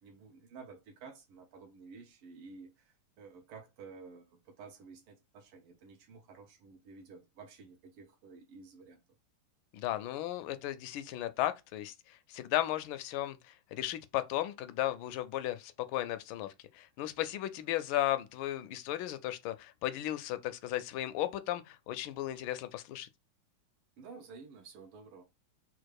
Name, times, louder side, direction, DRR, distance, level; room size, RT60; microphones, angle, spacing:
voice 1, 0.0-9.0 24.0-25.2, right 4 dB, 85° right, 1.8 m, -52 dB
voice 2, 9.7-11.9 12.3-13.4 13.7-16.5 16.7-23.1, left 14 dB, 75° left, 1.3 m, -35 dB
4.3 x 2.4 x 4.7 m
omnidirectional pair, 2.4 m